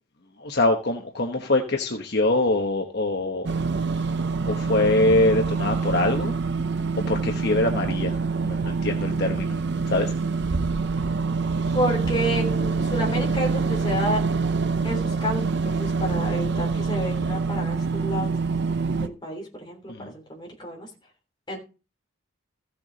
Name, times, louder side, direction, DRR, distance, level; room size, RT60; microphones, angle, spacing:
voice 1, 0.4-3.5 4.5-6.3 7.0-8.2 8.4-9.6 9.9-10.1 19.9-20.1, left 2 dB, 55° left, 3 dB, 1.1 m, -23 dB
sound 1, 3.4-19.1, right 4 dB, 55° right, 0.6 m, -25 dB
voice 2, 11.7-14.2 14.8-18.3 18.8-20.9 21.5-21.6, equal, 20° left, 0 dB, 3.3 m, -30 dB
15.0 x 7.0 x 4.0 m, 0.33 s
head